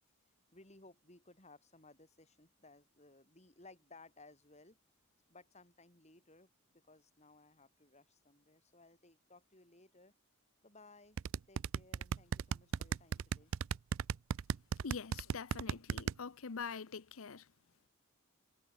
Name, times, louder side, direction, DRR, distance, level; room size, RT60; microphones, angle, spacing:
voice 1, 0.5-4.8 5.3-10.1 10.6-11.2 11.5-13.5, left 2 dB, 30° left, 6.8 m, -61 dB
sound 1, 11.2-16.1, right 6 dB, 75° right, 0.4 m, -35 dB
voice 2, 14.8-17.5, left 5 dB, 80° left, 0.8 m, -44 dB
head